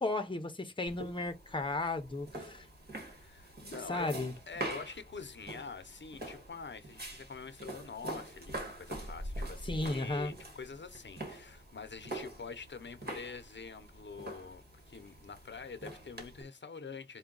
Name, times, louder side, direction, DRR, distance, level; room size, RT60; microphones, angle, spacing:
voice 1, 0.0-2.7 3.9-4.3 9.7-10.3, left 2 dB, 25° left, 0.7 m, -34 dB
sound 1, 0.9-16.4, right 1 dB, 55° right, 1.5 m, -45 dB
voice 2, 3.0-4.1 4.5-17.2, left 5 dB, 75° left, 0.6 m, -46 dB
4.5 x 2.2 x 3.8 m
wide cardioid pair, 60°, 19 cm